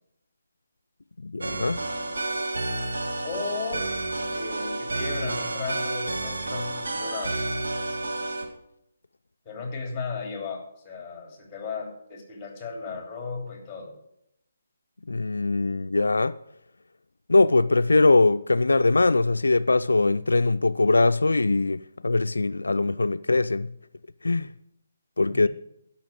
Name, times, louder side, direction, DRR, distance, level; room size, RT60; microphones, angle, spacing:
voice 1, 1.2-1.8 15.1-16.4 17.3-23.7 24.2-24.5 25.2-25.5, left 3 dB, 85° left, 0.3 m, -21 dB
sound 1, 1.4-8.4, right 2 dB, 70° right, 2.0 m, -30 dB
voice 2, 3.2-3.9 4.3-7.4 9.4-14.0 25.3-25.5, left 4 dB, 15° left, 3.1 m, -35 dB
12.5 x 5.7 x 7.9 m
figure-of-eight pair, 150°, 0 cm